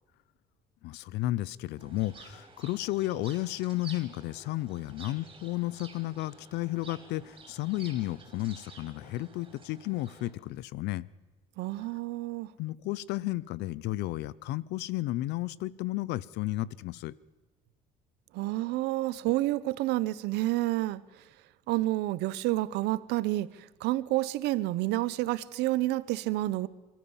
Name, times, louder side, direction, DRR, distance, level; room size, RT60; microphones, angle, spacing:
voice 1, 0.8-11.1 12.6-17.1, left 17 dB, 90° left, 22 dB, 0.7 m, -33 dB
sound 1, 1.8-10.3, right 4 dB, 30° right, 5.6 m, -51 dB
voice 2, 11.6-12.5 18.3-21.0 21.7-26.7, right 17 dB, 90° right, 18 dB, 0.9 m, -29 dB
28.0 x 14.0 x 7.3 m, 1.3 s
cardioid pair, 110°, 17 cm